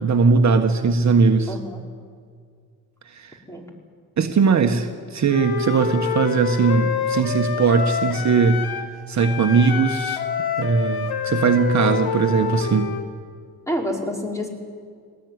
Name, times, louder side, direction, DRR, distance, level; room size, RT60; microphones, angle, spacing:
voice 1, 0.0-1.5 3.1-3.4 4.2-8.6 9.1-10.2 10.6-12.9, right 5 dB, 50° right, 4 dB, 1.6 m, -19 dB
voice 2, 1.5-1.8 3.5-3.7 13.7-14.5, equal, 10° left, 1 dB, 4.8 m, -28 dB
Wind instrument woodwind instrument, 5.3-8.9 9.2-13.1, left 8 dB, 80° left, 2.1 m, -27 dB
23.0 x 19.0 x 9.7 m, 2.1 s
cardioid pair, 95°, 37 cm